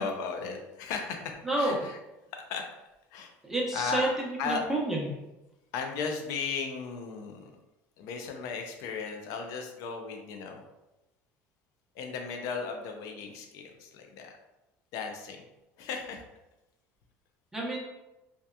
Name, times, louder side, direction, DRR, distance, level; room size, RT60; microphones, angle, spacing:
voice 1, 0.0-2.0 2.3-2.7 3.1-3.3 3.7-4.1 4.4-4.6 5.7-7.5 8.0-10.6 12.0-14.3 14.9-15.4 15.8-16.2, left 5 dB, 70° left, 4 dB, 0.4 m, -36 dB
voice 2, 1.4-1.9 3.4-5.1 17.5-17.8, right 1 dB, 5° right, -4 dB, 0.7 m, -29 dB
2.7 x 2.2 x 2.2 m, 0.97 s
cardioid pair, 125°, 6 cm